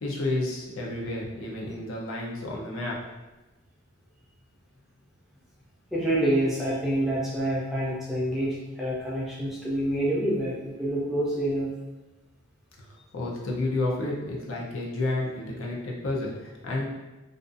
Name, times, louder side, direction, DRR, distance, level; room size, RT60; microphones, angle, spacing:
voice 1, 0.0-3.0 13.1-16.9, left 2 dB, 90° left, -3 dB, 0.6 m, -30 dB
voice 2, 5.9-11.7, right 1 dB, ahead, -6 dB, 0.5 m, -27 dB
2.5 x 2.3 x 2.5 m, 1.1 s
head